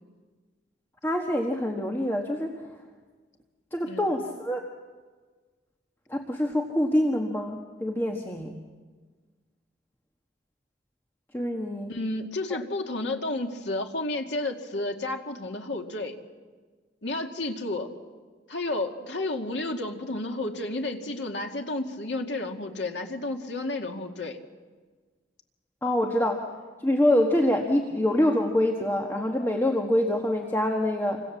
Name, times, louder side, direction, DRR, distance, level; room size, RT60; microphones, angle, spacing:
voice 1, 1.0-2.6 3.7-4.6 6.1-8.5 11.3-11.9 12.5-12.6 25.8-26.4 26.8-31.2, left 1 dB, 15° left, 1 dB, 1.5 m, -25 dB
voice 2, 11.9-16.2 17.0-17.9 18.5-24.4, left 2 dB, 75° left, 3 dB, 2.3 m, -31 dB
28.0 x 25.5 x 7.4 m, 1.4 s
head